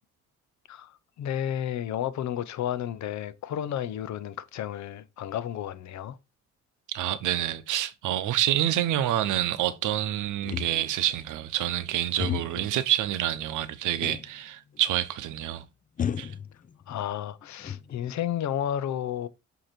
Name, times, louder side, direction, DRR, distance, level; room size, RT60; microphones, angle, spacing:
voice 1, 0.7-6.2 16.9-19.3, left 10 dB, 65° left, 0.7 m, -32 dB
voice 2, 6.9-15.6 16.2-16.3, right 12 dB, 80° right, 0.8 m, -27 dB
sound 1, 10.4-11.1 12.2-12.8 14.0-14.4 14.7-14.8 16.0-17.0 17.4-18.2, left 8 dB, 25° left, 0.4 m, -34 dB
7.7 x 2.9 x 4.4 m
cardioid pair, 90°, 30 cm